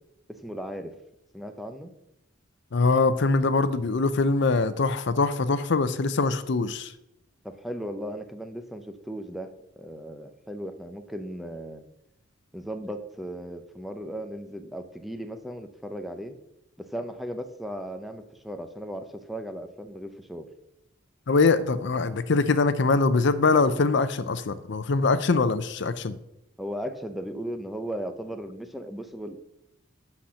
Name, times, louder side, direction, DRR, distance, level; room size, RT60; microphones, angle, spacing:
voice 1, 0.3-0.9 1.3-1.9 7.4-11.8 12.5-16.4 16.8-20.5 26.6-29.4, equal, ahead, 7 dB, 0.7 m, -36 dB
voice 2, 2.7-6.9 21.3-26.2, left 3 dB, 60° left, 13 dB, 0.6 m, -23 dB
11.5 x 4.3 x 6.3 m, 0.84 s
head